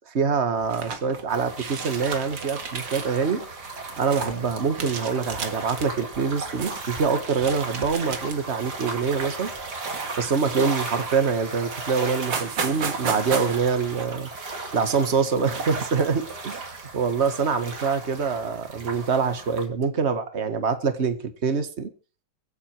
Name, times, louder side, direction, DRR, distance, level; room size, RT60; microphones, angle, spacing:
voice 1, 0.1-3.5 4.0-9.5 10.2-14.3 14.7-16.5 16.9-21.9, right 5 dB, 40° right, 1.9 m, -25 dB
sound 1, 0.6-1.2 1.5-3.1 3.4-4.4 4.8-5.9 6.3-6.9 7.2-8.5 9.0-9.2 9.8-10.8 11.4-11.5 11.7-11.8 12.1-13.6, right 5 dB, 80° right, 2.4 m, -34 dB
sound 2, 1.3-19.7, right 3 dB, 65° right, 3.2 m, -35 dB
sound 3, 4.2-9.6, equal, 15° right, 3.8 m, -49 dB
23.5 x 8.4 x 4.6 m
omnidirectional pair, 1.9 m